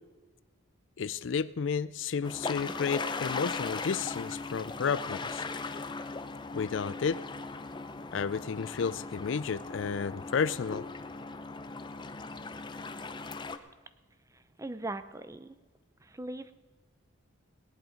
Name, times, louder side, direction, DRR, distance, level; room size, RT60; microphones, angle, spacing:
voice 1, 1.0-5.4 6.5-7.2 8.1-10.9, left 6 dB, 60° left, 17 dB, 0.4 m, -32 dB
sound 1, 2.2-13.6, left 3 dB, 20° left, 0.7 m, -38 dB
voice 2, 14.3-15.6 16.0-16.5, right 2 dB, 15° right, 12 dB, 0.5 m, -40 dB
18.0 x 11.0 x 5.1 m, 1.3 s
head